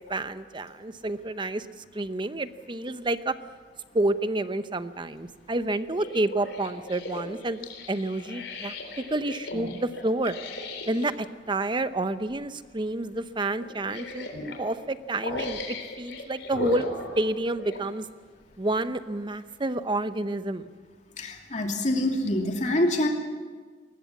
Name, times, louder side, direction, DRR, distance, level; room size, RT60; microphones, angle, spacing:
voice 1, 0.1-1.7 1.9-3.4 3.9-7.6 7.9-8.8 9.1-10.3 10.9-14.3 14.6-16.9 17.2-18.1 18.6-20.7, right 2 dB, 25° right, 12 dB, 0.8 m, -29 dB
sound 1, 5.8-11.1 12.2-12.4 12.8-12.9 13.6-14.6 15.2-17.9 18.5-18.6, left 1 dB, 80° left, 3.9 m, -37 dB
voice 2, 21.2-23.1, left 1 dB, 40° left, 2 dB, 2.7 m, -25 dB
21.5 x 20.0 x 7.3 m, 1.5 s
head